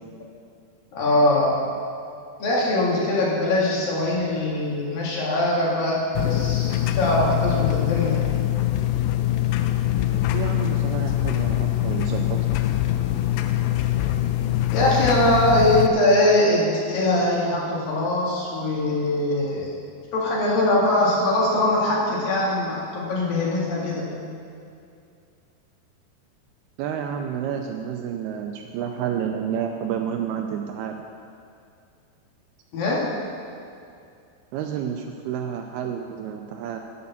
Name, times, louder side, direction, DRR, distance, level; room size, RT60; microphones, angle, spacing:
voice 1, 0.9-1.6 2.4-8.2 14.7-19.7 20.1-24.1 32.7-33.1, left 1 dB, 60° left, -5 dB, 3.5 m, -22 dB
sound 1, 6.2-15.9, left 13 dB, 90° left, 2.9 m, -23 dB
voice 2, 10.1-12.4 26.8-31.0 34.5-36.8, right 8 dB, 85° right, 4 dB, 2.3 m, -30 dB
9.7 x 9.5 x 7.1 m, 2.5 s
omnidirectional pair, 4.9 m